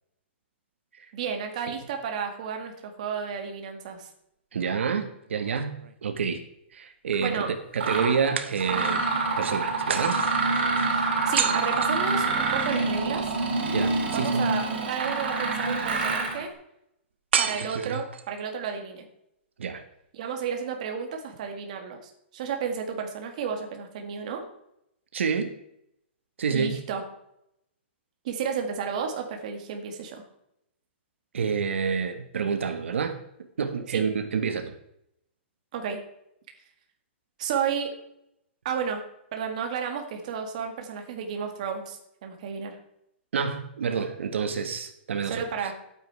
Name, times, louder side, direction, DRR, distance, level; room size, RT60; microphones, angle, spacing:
voice 1, 1.1-4.1 7.2-7.5 10.9-13.3 14.1-16.5 17.4-19.1 20.1-24.4 26.5-27.0 28.2-30.2 33.9-34.0 35.7-36.0 37.4-37.9 38.7-39.0 39.3-42.8 45.3-45.7, right 6 dB, 35° right, 4 dB, 1.9 m, -32 dB
voice 2, 4.5-6.4 6.7-9.0 9.4-10.2 13.7-14.5 17.7-18.0 19.6-19.8 25.1-25.6 26.4-26.8 31.3-33.2 33.6-34.7 43.3-45.4, right 6 dB, 90° right, 8 dB, 1.5 m, -28 dB
sound 1, 5.3-6.3 8.4-9.1 9.9-12.7 17.3-18.4, right 7 dB, 75° right, 1.1 m, -32 dB
Mechanisms, 7.1-7.3 7.8-8.1 8.6-16.4, right 3 dB, 55° right, 3.5 m, -26 dB
12.0 x 9.0 x 4.8 m, 0.78 s
hypercardioid pair, 175°, 6 cm